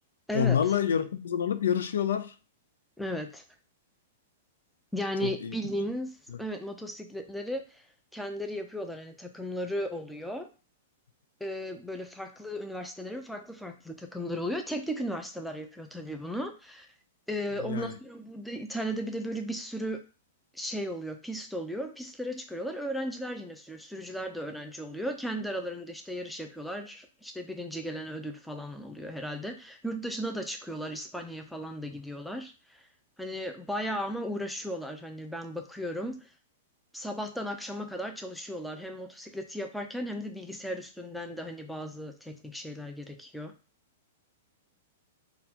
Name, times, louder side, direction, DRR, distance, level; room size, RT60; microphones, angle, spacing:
voice 1, 0.3-2.3 5.2-5.5 6.3-6.4 17.6-17.9, left 8 dB, 85° left, 0.4 m, -27 dB
voice 2, 3.0-3.4 4.9-7.9 8.1-10.5 11.4-16.9 17.3-20.0 20.5-32.9 33.2-36.3 36.9-43.5, equal, ahead, 0.4 m, -36 dB
3.8 x 2.3 x 2.8 m
hypercardioid pair, 140°, 0 cm